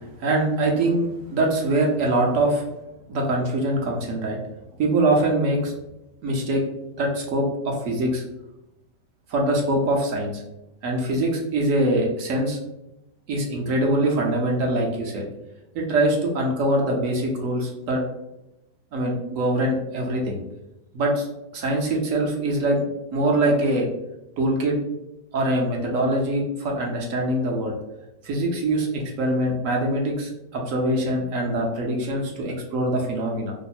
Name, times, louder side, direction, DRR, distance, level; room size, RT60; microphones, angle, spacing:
voice 1, 0.2-2.6 3.1-4.4 4.8-5.7 6.2-6.6 7.0-8.2 9.3-10.3 10.8-12.6 13.3-15.2 15.7-18.0 18.9-20.4 20.9-21.3 21.5-22.8 23.1-23.9 24.4-24.8 25.3-27.8 28.2-33.5, right 1 dB, 65° right, 0 dB, 0.8 m, -23 dB
3.0 x 2.0 x 4.1 m, 0.90 s
omnidirectional pair, 1.9 m